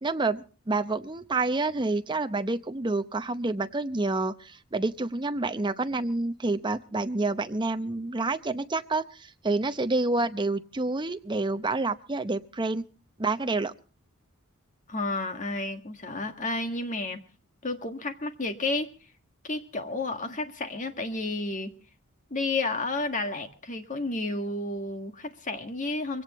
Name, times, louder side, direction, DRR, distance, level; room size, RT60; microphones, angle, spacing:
voice 1, 0.0-12.8 13.2-13.7, right 3 dB, 20° right, 10 dB, 0.7 m, -28 dB
voice 2, 14.9-17.2 17.6-18.9 19.4-21.7 22.3-26.2, left 2 dB, 40° left, 6 dB, 1.8 m, -31 dB
23.5 x 17.5 x 3.1 m, 0.35 s
head